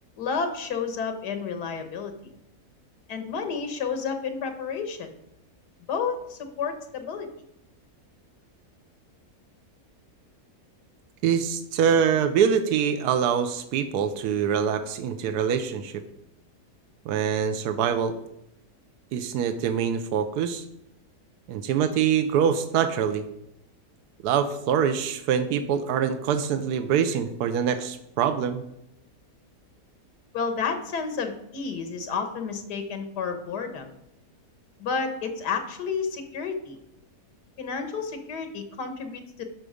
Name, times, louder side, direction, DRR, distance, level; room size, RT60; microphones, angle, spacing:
voice 1, 0.2-2.3 3.1-5.1 5.9-7.3 30.3-33.9 34.8-36.8 37.6-39.4, left 5 dB, 80° left, 7 dB, 1.8 m, -31 dB
voice 2, 11.2-16.0 17.1-18.2 19.1-20.6 21.5-23.2 24.2-28.6, right 8 dB, 80° right, 8 dB, 1.2 m, -24 dB
12.0 x 5.1 x 5.0 m, 0.82 s
omnidirectional pair, 1.7 m